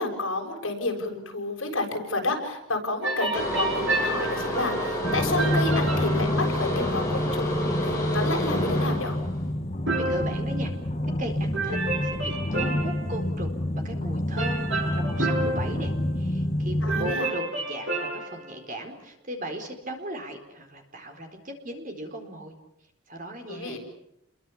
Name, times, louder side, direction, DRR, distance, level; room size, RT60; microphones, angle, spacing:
voice 1, 0.0-9.2 16.8-17.3 23.5-23.8, left 2 dB, 70° left, 2 dB, 7.0 m, -30 dB
sound 1, 3.0-6.2 9.9-11.2 11.5-13.2 14.4-16.6 16.9-18.5, right 2 dB, 60° right, 7.7 m, -30 dB
sound 2, 3.3-9.5, left 1 dB, 15° left, 7.5 m, -30 dB
sound 3, 5.0-17.1, left 1 dB, 35° left, 1.2 m, -28 dB
voice 2, 10.0-10.7 11.2-11.8 12.0-22.5 23.1-23.8, right 1 dB, 40° right, 5 dB, 4.3 m, -37 dB
30.0 x 23.0 x 7.3 m, 0.82 s
head